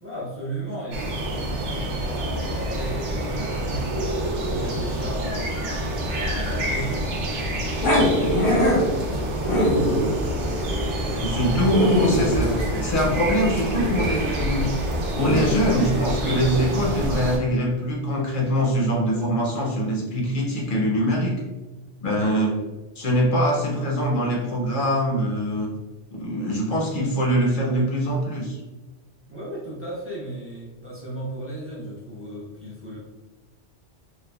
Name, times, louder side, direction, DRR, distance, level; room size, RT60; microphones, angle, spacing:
voice 1, 0.0-5.5 6.1-7.4 7.9-9.9 29.3-33.0, right 1 dB, 15° right, -6 dB, 0.6 m, -35 dB
sound 1, 0.9-17.4, right 1 dB, 80° right, 1.0 m, -27 dB
Growling, 7.8-15.5, equal, 85° left, 1.1 m, -23 dB
voice 2, 11.2-14.7 15.2-21.4 22.0-22.6 23.0-25.7 26.1-28.6, equal, 55° left, -2 dB, 0.6 m, -23 dB
3.2 x 2.1 x 2.2 m, 1.2 s
omnidirectional pair, 1.2 m